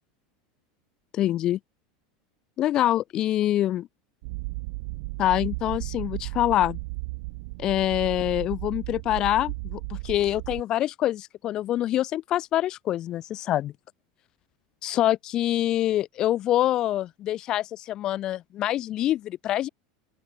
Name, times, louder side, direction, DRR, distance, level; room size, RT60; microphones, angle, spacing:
voice 1, 1.1-1.6 2.6-3.9 5.2-6.8 7.6-13.7 14.8-19.7, left 13 dB, 30° left, 1.1 m, -25 dB
sound 1, 4.2-10.6, right 27 dB, 60° right, 6.0 m, -35 dB
open air
supercardioid pair, 160°, 2 cm